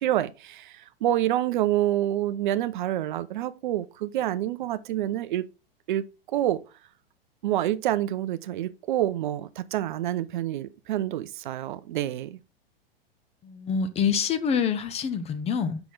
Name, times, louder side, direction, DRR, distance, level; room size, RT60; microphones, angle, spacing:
voice 1, 0.0-5.5 5.9-6.6 7.4-12.4, right 13 dB, 55° right, 0.5 m, -27 dB
voice 2, 13.4-15.8, left 6 dB, 20° left, 0.7 m, -26 dB
5.9 x 5.8 x 3.8 m
figure-of-eight pair, 95°, 30 cm